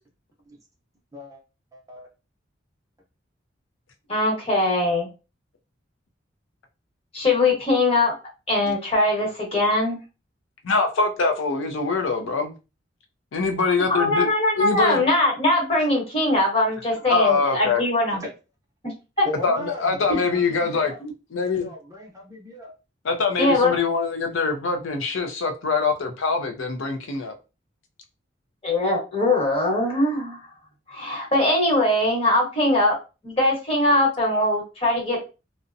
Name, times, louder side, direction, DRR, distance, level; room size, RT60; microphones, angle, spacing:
voice 1, 1.7-2.1 8.6-8.8 9.2-9.6 17.0-17.1 18.1-18.3 19.3-21.0 21.6-22.7, left 1 dB, 15° right, 0.6 m, -37 dB
voice 2, 4.1-5.1 7.1-8.1 8.5-10.0 13.9-18.2 18.8-19.3 23.4-23.7 28.6-30.4 30.9-33.0 33.2-35.2, left 2 dB, 30° left, 1.0 m, -21 dB
voice 3, 10.6-12.5 13.3-14.3 14.6-15.0 17.1-17.8 19.4-21.7 23.0-27.3, left 4 dB, 90° left, 0.5 m, -24 dB
2.5 x 2.1 x 2.5 m
head